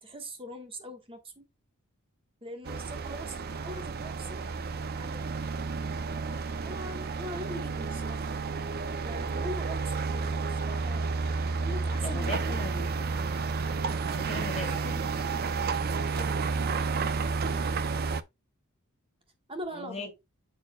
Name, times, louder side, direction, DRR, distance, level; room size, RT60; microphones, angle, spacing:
voice 1, 0.0-1.4 2.4-4.4 5.0-5.2 6.6-8.3 9.0-12.6 14.6-15.2 16.1-16.3 19.5-20.1, equal, 25° right, 1.4 m, -42 dB
sound 1, 2.6-18.2, right 4 dB, 45° right, 0.5 m, -31 dB
voice 2, 12.0-13.0 14.1-15.0 19.7-20.1, left 2 dB, 30° left, 1.9 m, -39 dB
7.6 x 6.5 x 2.3 m
head